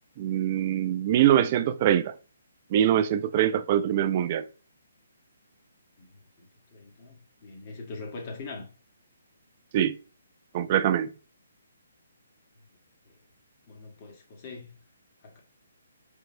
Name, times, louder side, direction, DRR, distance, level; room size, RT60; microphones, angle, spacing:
voice 1, 0.2-2.1 2.7-4.4 9.7-10.0 10.5-11.1, right 11 dB, 35° right, 0.4 m, -23 dB
voice 2, 6.0-8.7 13.7-14.7 15.2-15.4, left 3 dB, 40° left, 1.6 m, -42 dB
4.6 x 3.9 x 2.6 m
figure-of-eight pair, 140°, 0 cm